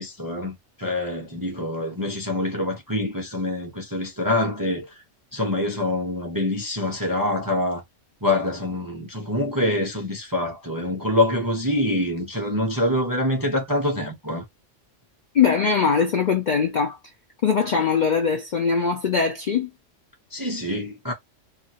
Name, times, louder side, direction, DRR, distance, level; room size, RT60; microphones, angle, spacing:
voice 1, 0.0-4.9 5.3-7.8 8.2-14.4 20.3-21.1, left 1 dB, 30° right, 0.4 m, -25 dB
voice 2, 15.3-17.0 17.4-19.7, left 6 dB, 60° left, 0.5 m, -21 dB
2.6 x 2.5 x 2.8 m
omnidirectional pair, 1.3 m